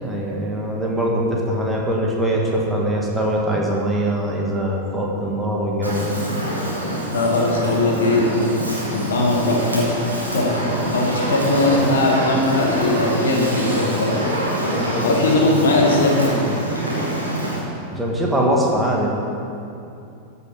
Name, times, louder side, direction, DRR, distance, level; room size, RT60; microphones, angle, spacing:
voice 1, 0.0-6.1 14.8-15.2 17.9-19.1, right 1 dB, 5° right, -2 dB, 1.8 m, -22 dB
Fire, 5.8-17.6, equal, 85° right, 2.0 m, -25 dB
voice 2, 7.1-8.5 8.9-9.9 10.3-14.2 15.0-16.4, left 2 dB, 60° left, -1 dB, 1.6 m, -19 dB
13.5 x 5.6 x 4.9 m, 2.7 s
figure-of-eight pair, 90°, 0 cm